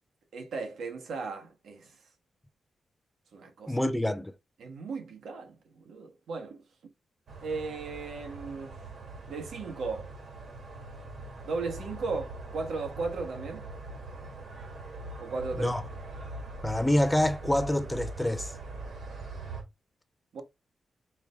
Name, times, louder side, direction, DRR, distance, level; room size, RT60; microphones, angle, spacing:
voice 1, 0.3-1.9 3.3-3.8 4.6-6.6 7.4-8.8 9.3-10.1 11.4-13.7 15.2-15.7 20.3-20.4, right 4 dB, 90° right, 1.3 m, -36 dB
voice 2, 3.7-4.3 15.6-15.8 16.6-18.5, left 1 dB, 5° left, 0.4 m, -26 dB
sound 1, 7.3-19.6, right 2 dB, 65° right, 1.4 m, -42 dB
4.9 x 2.6 x 3.3 m
wide cardioid pair, 150°, 0 cm